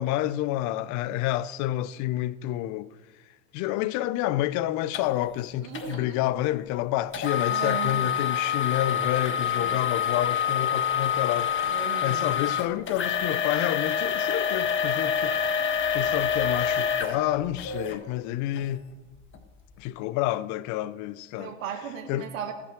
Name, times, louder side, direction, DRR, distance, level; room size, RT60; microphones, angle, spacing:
voice 1, 0.0-2.9 3.5-11.7 12.0-15.6 15.9-18.8 19.8-21.5 22.1-22.3, left 14 dB, 45° left, 0.6 m, -29 dB
sound 1, 4.9-5.0 5.7-6.0 7.1-18.0 18.6-18.7 19.3-19.4, left 7 dB, 30° left, 1.6 m, -27 dB
voice 2, 5.6-6.3 7.5-8.2 9.4-9.8 11.7-12.3 21.4-22.5, right 7 dB, 75° right, 2.2 m, -37 dB
18.0 x 6.1 x 6.0 m
hypercardioid pair, 95°, 40 cm